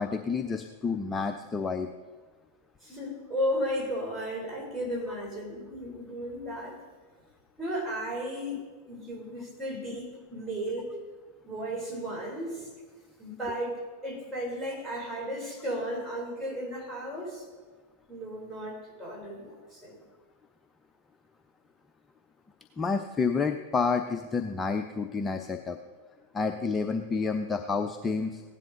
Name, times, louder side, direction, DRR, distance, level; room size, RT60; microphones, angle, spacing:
voice 1, 0.0-1.9 22.8-25.8 26.3-28.4, left 4 dB, 15° left, 7 dB, 0.6 m, -29 dB
voice 2, 2.8-6.8 7.6-10.9 11.4-12.7 13.2-17.4 18.1-20.0, equal, 10° right, -2 dB, 3.8 m, -34 dB
16.5 x 10.5 x 4.0 m, 1.4 s
figure-of-eight pair, 90°, 0 cm